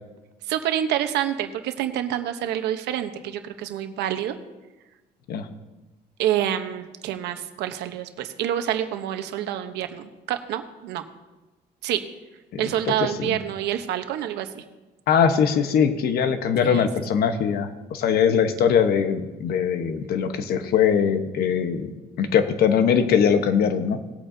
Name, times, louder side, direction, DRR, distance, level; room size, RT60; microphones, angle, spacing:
voice 1, 0.5-4.4 6.2-11.0 11.8-12.0 12.6-14.6 16.6-16.9, right 11 dB, 85° right, 8 dB, 1.0 m, -27 dB
voice 2, 13.0-13.4 15.1-21.9 22.2-24.0, left 7 dB, 65° left, 8 dB, 1.1 m, -21 dB
19.0 x 8.6 x 2.8 m, 1.1 s
cardioid pair, 110°, 17 cm